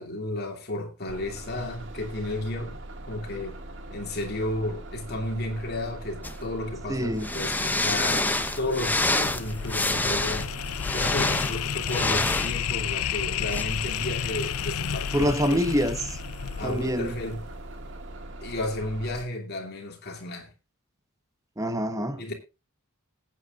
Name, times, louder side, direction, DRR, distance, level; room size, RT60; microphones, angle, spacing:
voice 1, 0.0-2.8 3.1-3.6 3.9-8.3 8.6-10.5 10.9-15.6 16.6-17.4 18.4-20.5 22.2-22.3, left 1 dB, 50° left, 2.7 m, -33 dB
Bus, 1.1-19.2, right 1 dB, 60° right, 2.0 m, -41 dB
sound 1, 6.2-6.4 7.2-12.5 13.5-13.6, left 2 dB, 10° left, 0.8 m, -27 dB
voice 2, 6.9-7.3 15.1-16.2 16.6-17.2 21.6-22.2, equal, 15° right, 1.1 m, -26 dB
sound 2, 8.5-17.7, left 9 dB, 85° left, 0.5 m, -32 dB
20.0 x 8.8 x 2.5 m
head